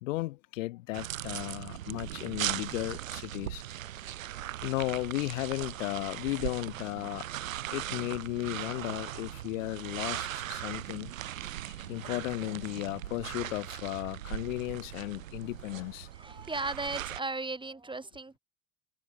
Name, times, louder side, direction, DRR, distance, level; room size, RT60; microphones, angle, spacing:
voice 1, 0.0-3.6 4.6-7.3 7.7-11.1 11.7-16.1, left 19 dB, 80° left, 1.0 m, -35 dB
sound 1, 0.9-17.2, right 12 dB, 90° right, 3.1 m, -39 dB
voice 2, 16.1-18.4, right 3 dB, 10° right, 4.7 m, -36 dB
hypercardioid pair, 95°, 39 cm